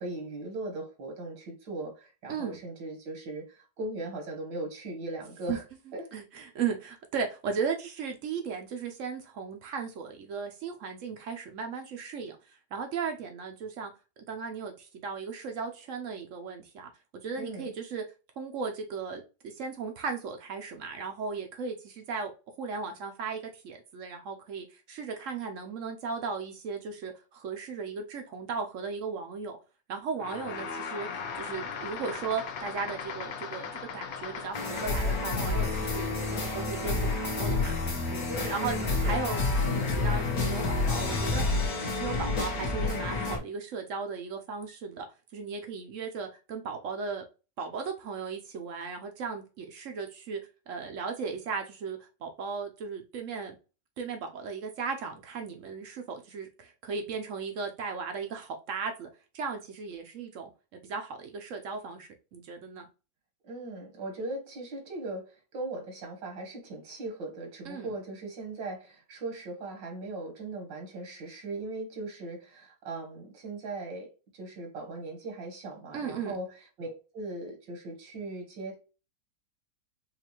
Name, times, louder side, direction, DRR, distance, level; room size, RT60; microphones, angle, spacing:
voice 1, 0.0-5.6 5.9-6.1 17.3-17.7 38.3-39.2 63.4-74.1 74.3-78.8, right 2 dB, 90° right, 1.9 m, -39 dB
voice 2, 6.1-12.4 12.7-13.9 14.3-16.9 17.2-18.0 18.4-22.3 22.6-29.6 29.9-31.1 31.3-37.7 38.1-45.1 45.3-47.2 47.6-50.4 50.7-53.5 54.0-59.1 59.3-60.5 60.8-62.9 67.7-67.9 75.9-76.3, right 5 dB, 70° right, 0.7 m, -36 dB
sound 1, 30.2-35.2, left 6 dB, 75° left, 0.6 m, -38 dB
sound 2, 34.5-43.4, left 3 dB, 60° left, 1.5 m, -29 dB
5.2 x 2.4 x 2.9 m
omnidirectional pair, 1.9 m